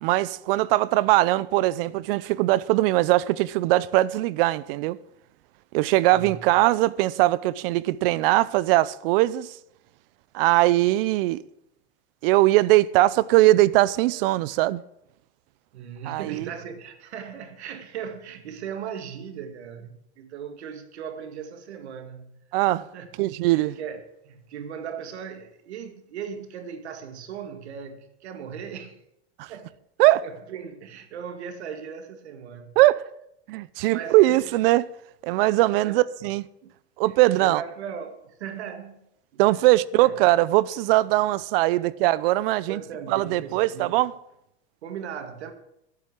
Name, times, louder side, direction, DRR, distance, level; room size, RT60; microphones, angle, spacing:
voice 1, 0.0-5.0 5.7-9.5 10.3-11.4 12.2-14.8 16.1-16.5 22.5-22.9 23.2-23.8 29.4-29.5 30.0-30.3 32.8-33.1 33.5-34.8 35.2-36.4 37.0-37.6 39.4-42.8 43.1-44.1, right 17 dB, 60° right, 0.7 m, -21 dB
voice 2, 6.1-6.4 15.7-23.1 23.4-29.0 29.5-29.7 30.2-32.8 33.9-34.6 35.8-36.0 36.6-36.7 37.4-39.0 39.3-39.4 40.0-40.2 42.7-44.0 44.8-45.5, right 7 dB, 85° right, 2.0 m, -38 dB
11.5 x 8.6 x 7.5 m
supercardioid pair, 130°, 32 cm